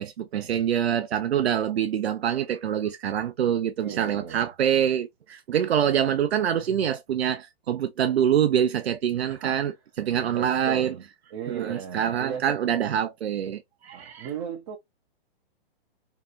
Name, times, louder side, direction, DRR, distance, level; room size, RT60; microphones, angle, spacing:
voice 1, 0.0-9.7 10.0-10.9 11.5-14.3, right 9 dB, 85° right, 0.5 m, -25 dB
voice 2, 3.8-4.5 9.3-9.6 10.3-11.0 11.3-12.6 13.9-14.8, right 7 dB, 30° right, 0.5 m, -36 dB
2.7 x 2.3 x 2.3 m
hypercardioid pair, 125°, 31 cm